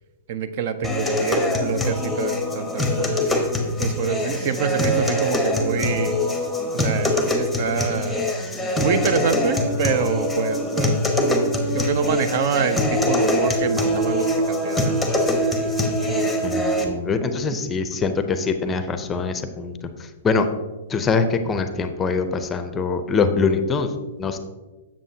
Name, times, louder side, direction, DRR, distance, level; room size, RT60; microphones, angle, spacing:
voice 1, 0.3-3.4 3.8-6.2 6.7-8.3 8.8-15.6, right 6 dB, 55° right, 12 dB, 0.5 m, -26 dB
sound 1, 0.8-16.8, left 1 dB, ahead, 0.9 m, -23 dB
voice 2, 16.4-19.7 20.0-20.5 20.9-23.9 24.2-24.4, left 4 dB, 20° left, 9 dB, 0.5 m, -23 dB
7.3 x 7.1 x 2.7 m, 1.2 s
hypercardioid pair, 135°, 0 cm